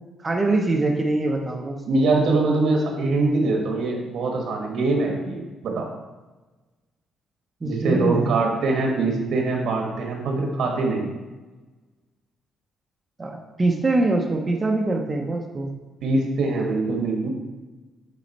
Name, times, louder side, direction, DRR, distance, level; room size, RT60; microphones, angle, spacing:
voice 1, 0.2-1.8 7.6-8.3 13.2-15.7, right 2 dB, 20° right, 2 dB, 0.6 m, -23 dB
voice 2, 1.8-5.9 7.6-11.1 16.0-17.3, right 3 dB, 65° right, 1 dB, 1.2 m, -23 dB
8.4 x 4.0 x 4.1 m, 1.2 s
cardioid pair, 165°, 0 cm